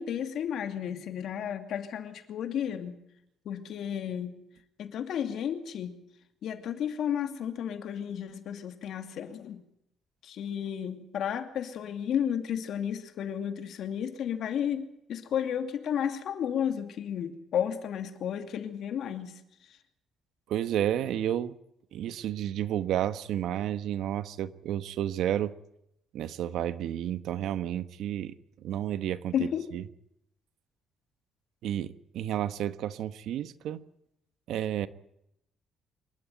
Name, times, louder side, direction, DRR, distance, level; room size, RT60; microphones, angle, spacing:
voice 1, 0.0-3.0 3.4-4.4 4.8-6.0 6.4-9.6 10.2-19.8 29.3-29.7, left 9 dB, 65° left, 7 dB, 2.5 m, -33 dB
voice 2, 20.5-21.6 21.9-25.5 26.1-28.3 28.6-29.3 29.7-29.8 31.6-33.8 34.5-34.9, right 11 dB, 80° right, 13 dB, 1.2 m, -31 dB
26.5 x 13.0 x 9.3 m, 0.80 s
cardioid pair, 130°, 0 cm